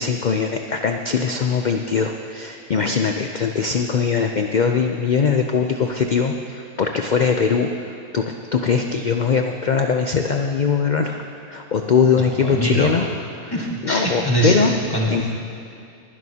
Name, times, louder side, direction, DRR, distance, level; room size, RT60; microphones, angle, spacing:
voice 1, 0.0-11.2 11.5-13.1 13.4-13.5 13.8-14.7 15.1-15.2, left 5 dB, 70° left, 4 dB, 0.4 m, -21 dB
voice 2, 12.1-12.9 13.5-14.6 14.9-15.3, right 1 dB, 15° left, -3 dB, 1.6 m, -23 dB
20.5 x 11.0 x 2.8 m, 2.5 s
omnidirectional pair, 1.5 m